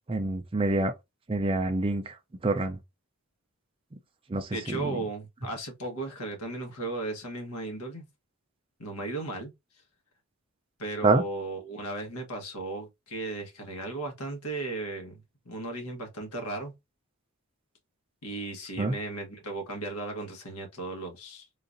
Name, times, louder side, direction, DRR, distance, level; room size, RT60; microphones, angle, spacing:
voice 1, 0.1-0.9 1.3-2.1 2.4-2.8 4.3-5.0 11.0-11.2 18.8-18.9, right 2 dB, 25° right, 0.4 m, -26 dB
voice 2, 4.5-8.1 8.8-9.5 10.8-16.7 18.2-21.4, right 2 dB, 85° left, 1.2 m, -36 dB
3.8 x 2.4 x 2.5 m
head